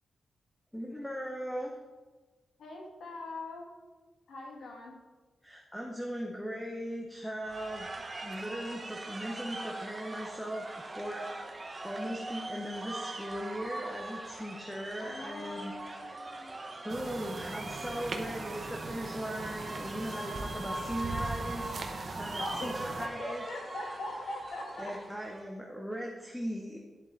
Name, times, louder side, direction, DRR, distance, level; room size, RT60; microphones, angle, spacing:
voice 1, 0.7-1.7 5.4-7.9 8.2-11.4 11.8-15.7 16.8-23.4 24.8-26.8, equal, 5° left, 0 dB, 1.0 m, -38 dB
voice 2, 2.6-3.7 4.3-4.9 15.0-16.9 22.4-24.9, left 2 dB, 75° left, 0 dB, 2.1 m, -41 dB
sound 1, 7.4-25.4, right 2 dB, 20° right, 1.0 m, -42 dB
sound 2, 16.9-23.1, right 3 dB, 45° right, 1.0 m, -40 dB
10.5 x 7.7 x 4.0 m, 1.3 s
wide cardioid pair, 150°, 0 cm